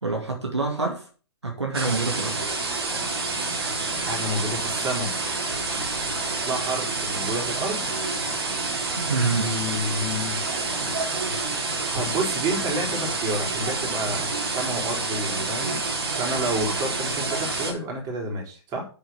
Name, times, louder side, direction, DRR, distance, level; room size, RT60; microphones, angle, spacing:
voice 1, 0.0-1.1 1.4-2.4 9.0-9.5, right 3 dB, 85° right, 2 dB, 2.4 m, -26 dB
sound 1, 1.7-17.7, right 3 dB, 60° right, 3.6 m, -28 dB
voice 2, 4.0-5.1 6.2-7.9 9.4-10.4 11.9-15.8 16.1-18.9, right 1 dB, 25° right, 1 dB, 4.1 m, -30 dB
8.5 x 7.2 x 5.8 m, 0.38 s
figure-of-eight pair, 115°, 14 cm